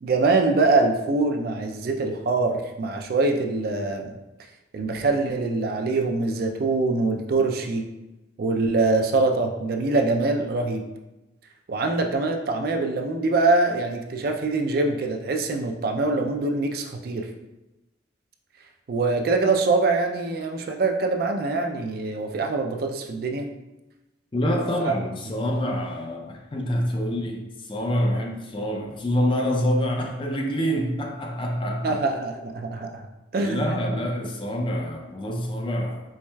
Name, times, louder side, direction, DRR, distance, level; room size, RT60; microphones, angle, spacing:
voice 1, 0.0-4.2 4.7-7.9 8.4-10.8 11.7-17.3 18.9-23.5 24.8-24.9 28.1-28.2 31.8-33.0 33.3-33.9, right 3 dB, 50° right, 3 dB, 0.3 m, -24 dB
voice 2, 24.3-32.0 33.3-36.0, equal, 25° left, 2 dB, 0.4 m, -26 dB
4.6 x 3.1 x 2.2 m, 1.0 s
head